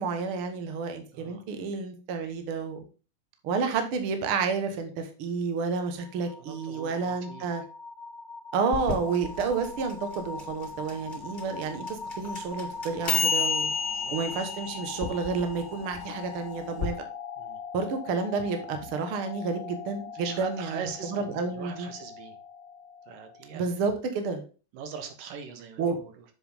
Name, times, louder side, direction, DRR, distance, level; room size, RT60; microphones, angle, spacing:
voice 1, 0.0-2.8 3.4-7.6 8.5-13.7 14.1-16.9 17.7-20.8 21.1-21.9 23.5-24.4 25.8-26.0, right 4 dB, 55° right, 7 dB, 1.7 m, -30 dB
voice 2, 1.1-1.4 6.4-7.5 13.9-14.1 17.4-17.6 20.1-22.4 23.1-23.9 24.7-26.3, right 7 dB, 85° right, 7 dB, 2.8 m, -41 dB
sound 1, 5.9-23.7, left 4 dB, 90° left, 0.6 m, -42 dB
sound 2, 8.7-16.9, left 5 dB, 20° left, 1.8 m, -32 dB
7.4 x 7.1 x 3.6 m, 0.34 s
omnidirectional pair, 3.9 m